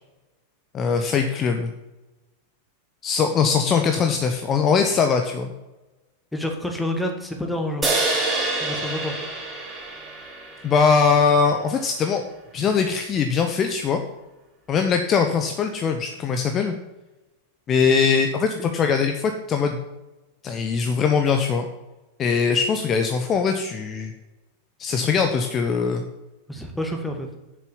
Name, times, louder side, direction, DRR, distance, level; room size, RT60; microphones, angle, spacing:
voice 1, 0.7-1.7 3.0-5.5 10.6-12.2 12.5-14.0 14.7-16.7 17.7-19.8 20.4-21.7 22.2-24.1 24.8-26.0, left 5 dB, 25° left, 5 dB, 0.9 m, -21 dB
voice 2, 6.3-7.9 8.6-9.1 18.6-18.7 26.5-27.3, left 1 dB, 5° left, 3 dB, 1.8 m, -28 dB
sound 1, 7.8-11.3, right 2 dB, 10° right, 3.9 m, -27 dB
7.4 x 6.9 x 7.1 m, 1.0 s
figure-of-eight pair, 90°, 0 cm